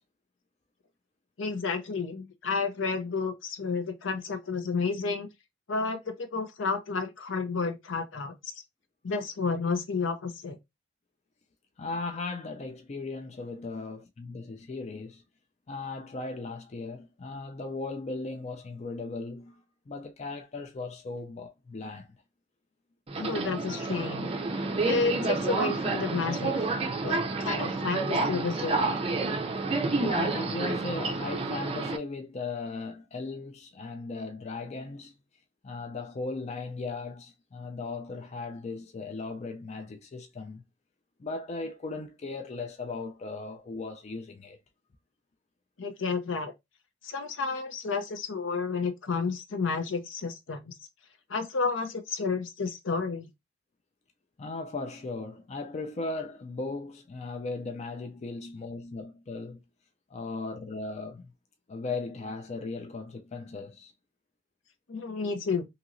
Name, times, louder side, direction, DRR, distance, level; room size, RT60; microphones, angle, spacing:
voice 1, 1.4-5.3 5.7-8.3 9.0-10.6 23.2-24.3 24.8-26.5 27.0-28.8 45.8-46.5 47.0-50.7 51.3-53.3 64.9-65.7, left 4 dB, 75° left, 0.6 m, -31 dB
voice 2, 11.8-15.2 15.7-22.1 29.7-35.1 35.6-40.6 41.2-44.6 54.4-59.6 60.1-61.3 61.7-63.9, left 3 dB, 35° left, 0.4 m, -37 dB
Subway metro underground, 23.1-32.0, right 3 dB, 30° right, 0.5 m, -29 dB
2.9 x 2.8 x 2.5 m
head